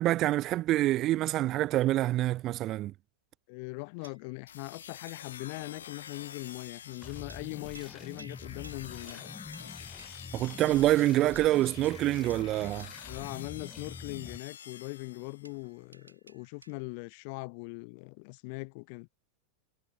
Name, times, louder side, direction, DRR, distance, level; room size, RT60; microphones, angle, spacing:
voice 1, 0.0-2.9 10.3-12.9, right 15 dB, 35° right, 0.4 m, -26 dB
voice 2, 3.5-9.2 13.0-19.1, left 33 dB, 45° left, 1.4 m, -41 dB
sound 1, 4.0-4.5 5.1-5.5 6.1-6.6 7.3-13.2 15.5-17.0, right 2 dB, 85° right, 3.1 m, -58 dB
sound 2, 4.5-15.6, left 9 dB, 65° left, 3.7 m, -48 dB
sound 3, 7.0-14.4, left 4 dB, 10° left, 4.9 m, -47 dB
figure-of-eight pair, 90°, 0 cm